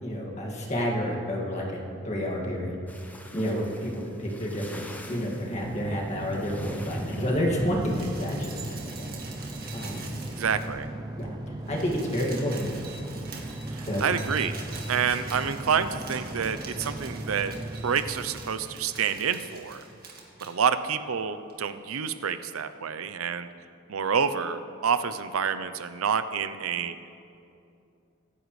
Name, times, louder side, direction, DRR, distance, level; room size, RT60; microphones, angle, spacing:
voice 1, 0.0-2.8 3.3-4.8 5.1-9.2 9.7-10.0 11.2-11.3 11.7-12.8 13.8-14.1, equal, 35° left, -2 dB, 2.1 m, -29 dB
sound 1, 2.9-7.6, left 1 dB, 10° left, 0.8 m, -48 dB
sound 2, 5.5-20.0, right 1 dB, 20° right, 0.5 m, -38 dB
sound 3, 7.6-10.9 11.2-11.3 11.5-20.5 21.5-21.6, right 4 dB, 45° right, 1.8 m, -45 dB
voice 2, 10.4-10.9 14.0-14.5 14.9-17.5 17.8-19.8 20.5-23.5 23.9-26.9, right 7 dB, 85° right, 11 dB, 0.6 m, -28 dB
24.5 x 10.0 x 3.2 m, 2.6 s
head